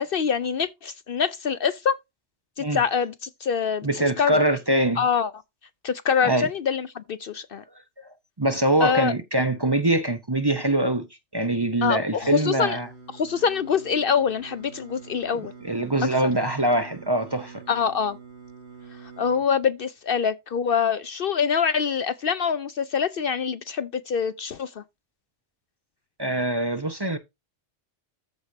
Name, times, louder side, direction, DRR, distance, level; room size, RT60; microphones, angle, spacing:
voice 1, 0.0-2.0 2.6-4.4 5.0-5.3 5.8-7.6 8.8-9.1 11.8-12.8 13.1-15.5 17.7-18.2 19.2-24.8, left 6 dB, 60° left, 0.7 m, -25 dB
voice 2, 3.8-5.0 6.2-6.5 8.0-8.1 8.4-11.1 11.3-12.9 15.6-17.6 26.2-27.2, right 1 dB, 25° right, 0.8 m, -23 dB
Singing, 12.2-19.4, right 5 dB, 65° right, 3.0 m, -45 dB
14.0 x 4.9 x 2.7 m
omnidirectional pair, 1.2 m